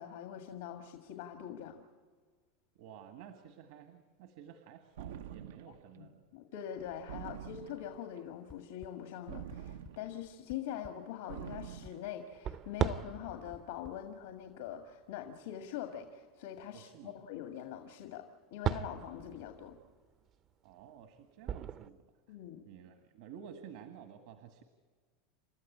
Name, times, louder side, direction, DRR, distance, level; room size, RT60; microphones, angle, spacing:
voice 1, 0.0-1.8 6.0-19.8 22.3-22.6, left 10 dB, 85° left, 5 dB, 1.8 m, -43 dB
voice 2, 2.8-6.2 16.7-17.2 20.6-22.0 22.3-22.4 22.7-24.6, right 8 dB, 70° right, 7 dB, 1.6 m, -52 dB
sound 1, 5.0-5.8 7.1-8.1 9.3-10.3 11.3-12.2, right 10 dB, 90° right, 0.6 m, -46 dB
sound 2, 6.8-7.9 8.6-8.8 9.5-9.6 12.3-16.1 18.4-21.9, right 9 dB, 35° right, 0.6 m, -40 dB
sound 3, 8.5-8.9 9.5-9.9 10.3-10.9 11.5-11.9 12.5-12.9 13.5-13.9, left 5 dB, 15° left, 0.5 m, -52 dB
29.5 x 13.5 x 8.5 m, 1.5 s
supercardioid pair, 145°, 0 cm